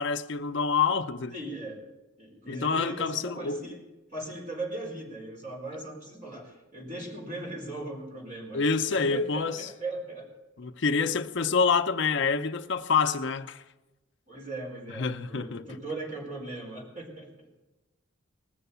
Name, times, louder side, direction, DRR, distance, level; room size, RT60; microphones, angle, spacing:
voice 1, 0.0-1.3 2.5-3.6 8.5-9.7 10.6-13.6 14.9-15.8, left 5 dB, 55° left, 0.6 m, -27 dB
voice 2, 1.3-1.8 2.2-3.8 4.1-8.6 8.9-10.3 14.3-17.6, right 2 dB, 35° right, 4.3 m, -38 dB
20.0 x 7.0 x 6.8 m
head